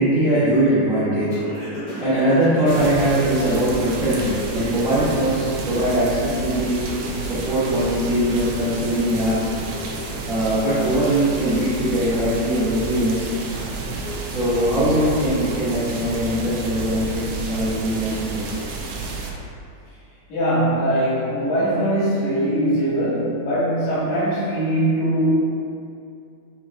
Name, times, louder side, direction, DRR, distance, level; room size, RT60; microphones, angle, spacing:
voice 1, 0.0-1.4 2.0-6.8 7.3-9.5 10.3-13.3 14.2-18.5, right 1 dB, 60° right, -14 dB, 0.8 m, -21 dB
Singing, 1.3-5.4 5.8-16.2, equal, 60° left, 2.5 m, -37 dB
sound 1, 2.7-19.3, right 3 dB, 80° right, 1.4 m, -31 dB
voice 2, 20.3-25.3, right 1 dB, 85° left, -10 dB, 2.9 m, -21 dB
6.1 x 3.5 x 2.4 m, 2.5 s
omnidirectional pair, 3.3 m